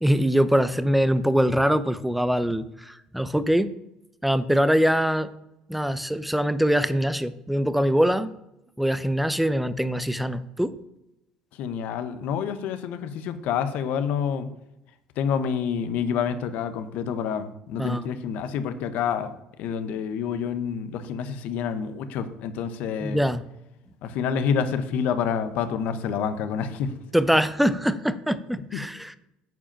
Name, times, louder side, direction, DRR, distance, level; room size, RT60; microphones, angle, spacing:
voice 1, 0.0-3.7 4.2-5.3 5.7-8.3 8.8-10.8 17.8-18.0 23.0-23.4 27.1-29.2, equal, 5° right, 13 dB, 0.8 m, -23 dB
voice 2, 11.6-14.5 15.2-19.3 19.6-23.2 24.0-27.0 28.7-28.8, left 7 dB, 65° left, 11 dB, 1.0 m, -28 dB
9.4 x 4.9 x 7.5 m, 0.90 s
hypercardioid pair, 70°, 3 cm